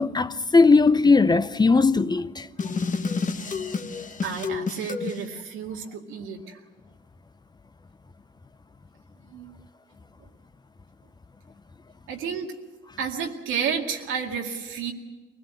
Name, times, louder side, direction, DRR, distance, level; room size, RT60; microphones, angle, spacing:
voice 1, 0.0-2.5, left 4 dB, 20° left, 0.6 m, -18 dB
sound 1, 2.6-5.2, left 4 dB, 40° left, 1.4 m, -29 dB
voice 2, 4.2-6.6 9.3-9.6 12.1-12.5 13.0-14.9, right 7 dB, 90° right, 2.3 m, -31 dB
23.5 x 17.0 x 7.7 m
cardioid pair, 90°, 20 cm